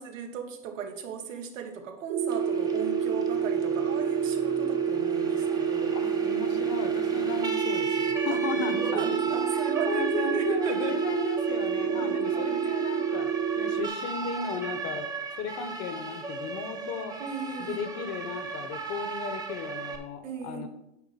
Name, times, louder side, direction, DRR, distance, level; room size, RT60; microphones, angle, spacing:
voice 1, 0.0-6.0 8.3-8.4 8.8-11.0 11.8-12.8 17.2-17.9 20.2-20.7, right 6 dB, 80° right, 4 dB, 1.5 m, -37 dB
sound 1, 2.1-13.9, right 7 dB, 45° right, 1.3 m, -28 dB
Siren, 2.3-20.0, right 4 dB, 10° right, 0.7 m, -38 dB
voice 2, 5.9-9.1 9.9-13.3 13.6-15.1 15.4-17.1 17.6-20.7, left 6 dB, 40° left, 9 dB, 1.1 m, -35 dB
9.5 x 4.2 x 5.7 m, 0.85 s
hypercardioid pair, 125°, 38 cm